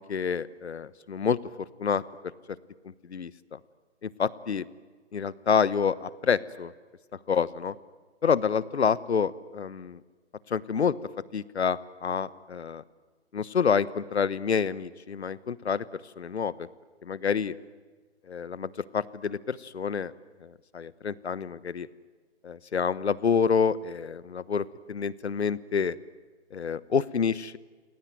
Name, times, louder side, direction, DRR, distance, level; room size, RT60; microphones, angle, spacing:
voice 1, 0.0-2.0 2.8-3.6 4.0-4.7 5.1-6.7 7.3-7.7 8.2-10.0 10.5-10.9 11.3-12.8 13.3-15.9 16.2-16.7 17.0-17.5 18.3-20.1 20.4-21.9 22.4-26.0 26.5-27.6, left 6 dB, 65° left, 19 dB, 1.2 m, -28 dB
29.5 x 21.0 x 9.3 m, 1.4 s
figure-of-eight pair, 140°, 35 cm